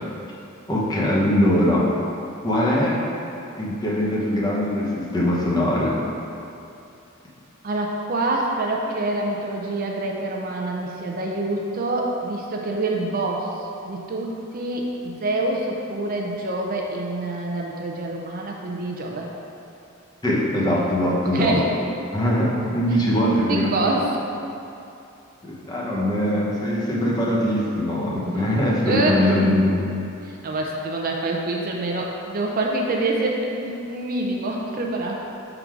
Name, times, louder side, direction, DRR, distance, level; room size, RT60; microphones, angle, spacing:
voice 1, 0.7-1.9 2.4-3.0 3.6-5.9 20.2-21.7 22.1-24.0 25.4-29.9, left 1 dB, 20° left, -5 dB, 0.8 m, -21 dB
voice 2, 7.6-19.3 21.2-21.7 23.2-24.1 28.9-29.3 30.2-35.2, right 2 dB, 45° right, -1 dB, 0.5 m, -26 dB
5.9 x 3.9 x 4.6 m, 2.7 s
head